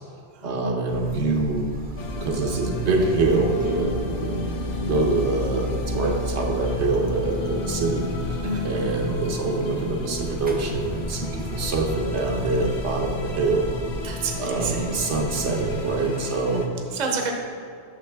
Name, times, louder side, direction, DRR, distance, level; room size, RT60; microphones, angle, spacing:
voice 1, 0.4-1.7 2.2-8.4 8.6-14.1 14.4-16.6 16.9-17.0, right 3 dB, 75° right, 1 dB, 1.1 m, -25 dB
Buzz, 0.9-15.9, equal, 10° right, 0.5 m, -33 dB
sound 1, 2.0-16.7, left 3 dB, 70° left, 1.0 m, -34 dB
voice 2, 14.0-14.8 16.9-17.3, right 4 dB, 40° right, 2 dB, 0.8 m, -29 dB
8.5 x 6.3 x 3.4 m, 2.3 s
omnidirectional pair, 1.2 m